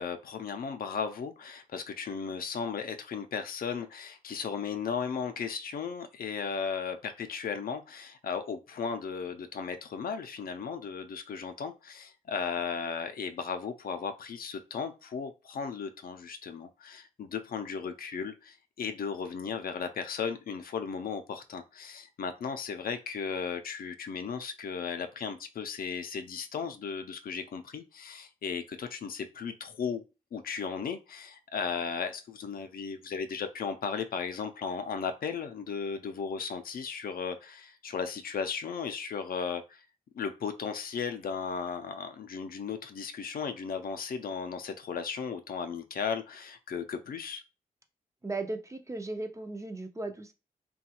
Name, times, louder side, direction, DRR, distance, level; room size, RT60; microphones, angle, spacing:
voice 1, 0.0-30.0 30.3-39.8 40.1-47.4, left 6 dB, 70° left, 8 dB, 0.4 m, -36 dB
voice 2, 48.2-50.3, right 2 dB, 20° right, 7 dB, 0.4 m, -36 dB
3.0 x 2.3 x 2.8 m, 0.29 s
wide cardioid pair, 100°, 15 cm